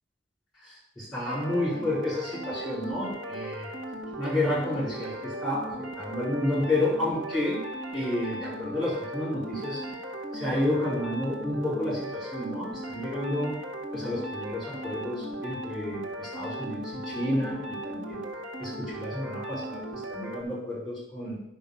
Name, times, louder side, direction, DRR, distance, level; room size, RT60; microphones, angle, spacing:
voice 1, 0.6-3.7 4.2-7.6 7.9-9.8 10.3-13.5 13.9-18.2 18.6-21.4, left 1 dB, ahead, -6 dB, 5.2 m, -30 dB
sound 1, 1.3-20.4, right 1 dB, 75° right, 1.8 m, -37 dB
10.0 x 5.8 x 7.0 m, 0.77 s
head